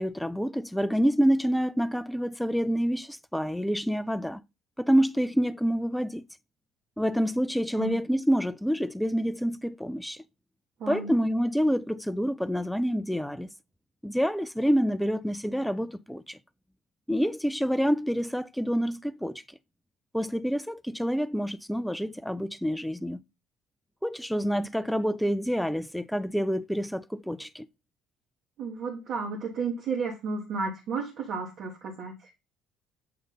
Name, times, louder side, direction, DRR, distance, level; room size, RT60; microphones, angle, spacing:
voice 1, 0.0-4.4 4.8-6.2 7.0-10.2 10.9-13.5 14.0-16.4 17.1-19.4 20.1-23.2 24.0-27.7, equal, ahead, 0.4 m, -27 dB
voice 2, 10.8-11.1 28.6-32.3, right 4 dB, 55° right, 1.5 m, -33 dB
7.7 x 3.1 x 3.9 m
figure-of-eight pair, 55°, 0 cm